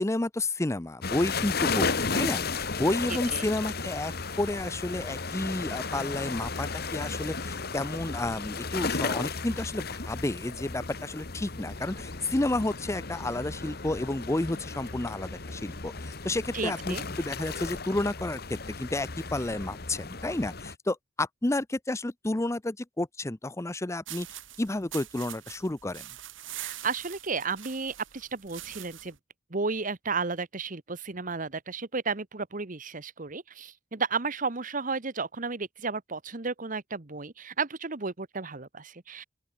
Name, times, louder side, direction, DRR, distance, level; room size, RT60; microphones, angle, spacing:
voice 1, 0.0-4.1 4.4-24.3 24.6-26.0, left 2 dB, 15° left, 0.6 m, -31 dB
sound 1, 1.0-20.8, left 4 dB, 55° left, 1.7 m, -34 dB
voice 2, 3.1-3.5 16.5-17.0 26.5-29.1 29.5-39.2, right 4 dB, 45° right, 1.3 m, -33 dB
sound 2, 24.1-29.2, right 13 dB, 90° right, 3.2 m, -43 dB
open air
head